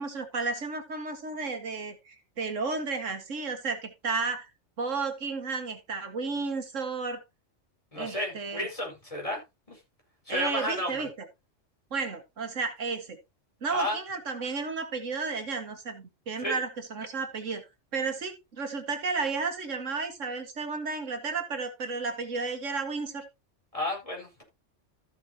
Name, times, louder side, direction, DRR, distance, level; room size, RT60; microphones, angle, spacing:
voice 1, 0.0-4.5 4.8-7.2 8.0-8.7 10.3-11.3 11.9-13.2 13.6-17.6 17.9-23.3, right 4 dB, 85° right, 2.0 m, -32 dB
voice 2, 7.9-9.4 9.7-9.8 10.3-11.0 13.7-14.0 16.4-16.6 23.7-24.4, left 1 dB, 25° left, 4.9 m, -32 dB
14.0 x 6.9 x 2.8 m
omnidirectional pair, 1.3 m